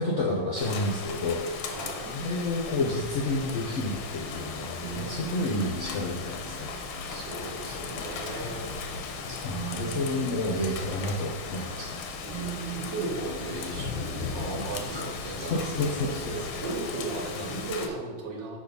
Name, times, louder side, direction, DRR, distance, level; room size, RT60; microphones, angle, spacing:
voice 1, 0.0-1.7 2.0-6.7 9.2-12.0 14.5-15.0 15.4-16.3 17.4-17.5, left 2 dB, 60° left, -3 dB, 0.7 m, -30 dB
Rain, 0.6-17.9, left 5 dB, 90° left, 1.4 m, -37 dB
voice 2, 1.7-2.1 7.1-8.7 12.2-18.6, right 3 dB, 70° right, -1 dB, 1.6 m, -36 dB
sound 1, 2.2-16.6, right 5 dB, 5° right, 1.2 m, -42 dB
6.4 x 2.8 x 5.3 m, 1.3 s
omnidirectional pair, 2.1 m